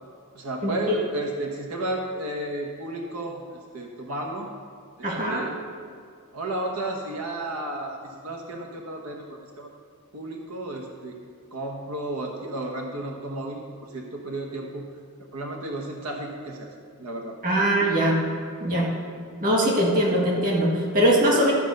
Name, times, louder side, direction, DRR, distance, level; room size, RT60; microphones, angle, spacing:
voice 1, 0.3-4.5 5.0-5.6 6.3-9.7 10.1-11.2 11.5-14.8 15.3-16.7 17.0-17.7, right 1 dB, 85° right, 1 dB, 1.2 m, -33 dB
voice 2, 5.0-5.5 17.4-18.2 18.6-18.9 19.4-21.5, right 1 dB, 40° right, -2 dB, 2.1 m, -21 dB
13.0 x 5.1 x 6.6 m, 2.2 s
head